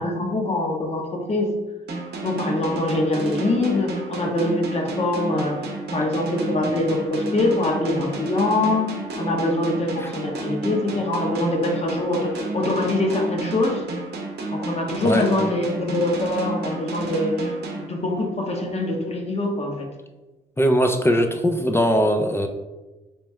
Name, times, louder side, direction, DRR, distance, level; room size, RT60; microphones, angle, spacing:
voice 1, 0.0-1.5 2.2-5.7 5.9-13.8 14.5-19.9, left 2 dB, 35° left, 1 dB, 1.0 m, -24 dB
sound 1, 1.9-18.5, right 2 dB, 60° right, 0.7 m, -31 dB
voice 2, 20.6-22.5, equal, 15° left, 5 dB, 0.4 m, -20 dB
3.4 x 3.1 x 3.2 m, 1.1 s
supercardioid pair, 60°, 19 cm